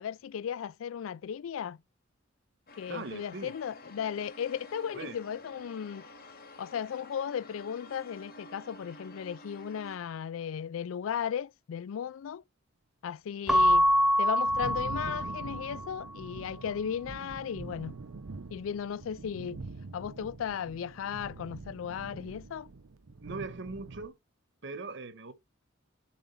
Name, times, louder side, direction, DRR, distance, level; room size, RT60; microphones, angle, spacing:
voice 1, 0.0-1.8 2.8-6.1 6.6-12.4 13.0-13.9 14.2-18.0 18.5-19.6 19.9-22.7, left 8 dB, 75° left, 0.3 m, -36 dB
sound 1, 2.7-10.0, left 1 dB, 45° left, 1.3 m, -50 dB
voice 2, 2.9-3.5 4.9-5.2 23.2-24.1 24.6-25.3, right 3 dB, 60° right, 1.2 m, -40 dB
Keyboard (musical) / Bell, 13.5-15.9, equal, ahead, 0.3 m, -25 dB
Thunder, 13.9-24.1, right 3 dB, 85° right, 0.7 m, -44 dB
7.3 x 3.8 x 5.7 m
head